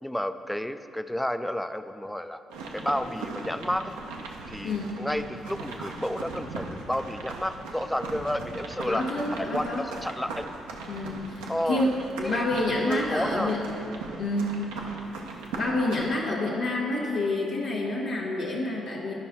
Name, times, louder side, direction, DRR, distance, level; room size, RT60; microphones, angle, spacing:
voice 1, 0.0-2.4 2.7-3.9 4.5-9.0 9.4-10.5 11.5-11.9 12.2-12.5 12.9-13.5, left 1 dB, 5° left, 10 dB, 0.4 m, -31 dB
sound 1, 2.5-16.1, right 3 dB, 85° right, 0.7 m, -39 dB
voice 2, 4.6-5.0 8.9-9.8 10.9-13.6 14.2-14.6 15.6-19.1, left 2 dB, 80° left, -8 dB, 1.1 m, -28 dB
11.0 x 5.2 x 4.4 m, 2.7 s
hypercardioid pair, 45°, 0 cm